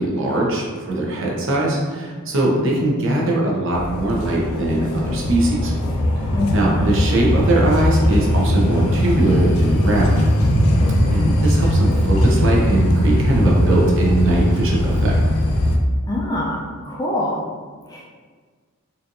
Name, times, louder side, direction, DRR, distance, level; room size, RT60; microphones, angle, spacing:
voice 1, 0.0-5.7 6.5-10.2 11.1-15.2, right 2 dB, 60° right, -3 dB, 0.8 m, -21 dB
voice 2, 2.5-3.2 6.3-6.9 11.0-11.4 16.1-17.4 17.9-18.1, left 1 dB, 15° left, -3 dB, 0.4 m, -26 dB
sound 1, 3.7-15.8, equal, 75° left, 0.5 m, -19 dB
4.2 x 2.6 x 2.6 m, 1.5 s
head